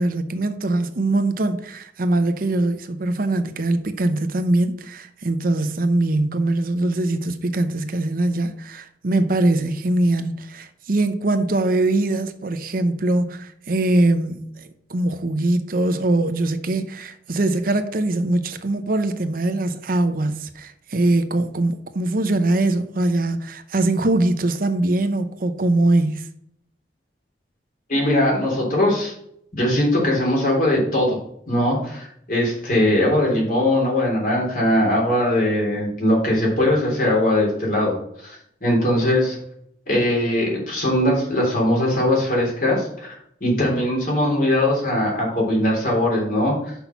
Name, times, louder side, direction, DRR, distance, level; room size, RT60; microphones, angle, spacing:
voice 1, 0.0-26.3, right 2 dB, 55° right, 0.7 m, -22 dB
voice 2, 27.9-29.1 29.6-31.2 31.5-38.4 38.6-39.4 39.9-46.7, left 1 dB, 50° left, 3.2 m, -20 dB
6.0 x 5.6 x 5.7 m
head